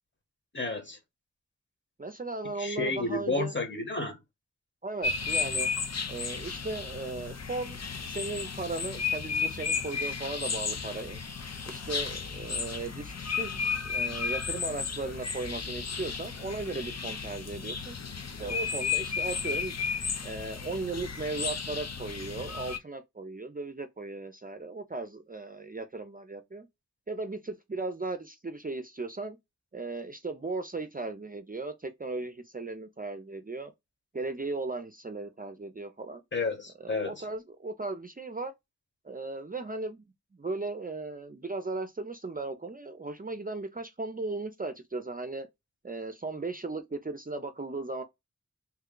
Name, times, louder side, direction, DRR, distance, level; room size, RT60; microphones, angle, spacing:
voice 1, 0.5-1.0 2.6-4.2 36.3-37.1, left 3 dB, 40° left, 1.2 m, -31 dB
voice 2, 2.0-3.6 4.8-5.7 6.1-7.8 8.1-11.2 11.7-18.0 18.4-19.8 20.2-26.7 27.1-29.4 29.7-33.7 34.1-36.2 36.8-38.5 39.0-40.0 40.3-45.5 45.8-48.0, right 3 dB, 30° right, 0.4 m, -37 dB
sound 1, 5.0-22.8, left 5 dB, 60° left, 0.6 m, -33 dB
3.0 x 2.3 x 3.6 m
wide cardioid pair, 45°, 30 cm